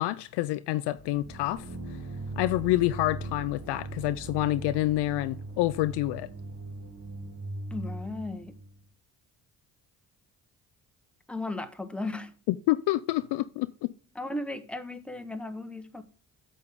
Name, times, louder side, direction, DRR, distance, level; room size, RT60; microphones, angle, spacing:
voice 1, 0.0-1.7 2.4-6.3 12.5-13.9, left 16 dB, 60° left, 0.5 m, -27 dB
sound 1, 1.0-8.8, right 2 dB, 40° right, 1.8 m, -40 dB
voice 2, 7.7-8.6 11.3-12.3 14.1-16.0, left 2 dB, ahead, 0.9 m, -36 dB
8.3 x 6.5 x 3.6 m
hypercardioid pair, 45°, 48 cm